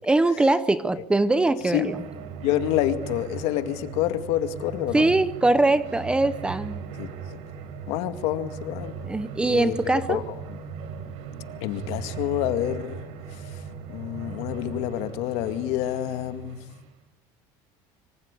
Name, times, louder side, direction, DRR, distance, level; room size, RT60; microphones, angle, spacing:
voice 1, 0.0-2.0 4.9-6.8 9.0-10.2, right 2 dB, 10° right, 14 dB, 0.9 m, -22 dB
sound 1, 1.2-17.0, right 6 dB, 65° right, 4.8 m, -38 dB
voice 2, 2.4-5.1 7.0-7.1 7.9-8.9 9.5-9.8 10.1-10.2 10.5-10.6 11.6-13.0 13.9-16.6, left 12 dB, 65° left, 9 dB, 2.2 m, -27 dB
25.5 x 25.5 x 8.4 m, 0.91 s
cardioid pair, 160°, 11 cm